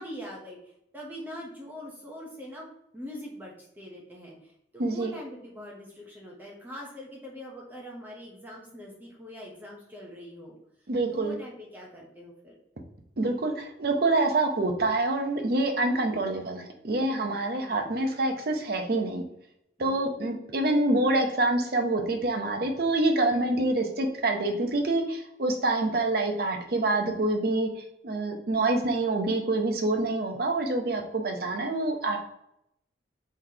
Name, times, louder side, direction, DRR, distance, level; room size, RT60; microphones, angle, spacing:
voice 1, 0.0-2.6 2.9-10.6 11.1-12.6 17.5-18.0 19.8-20.2, equal, 10° right, -2 dB, 0.7 m, -43 dB
voice 2, 4.8-5.1 10.9-11.3 13.2-19.2 19.8-27.7 28.0-32.2, right 2 dB, 55° right, 4 dB, 0.6 m, -26 dB
3.9 x 3.2 x 2.7 m, 0.79 s
head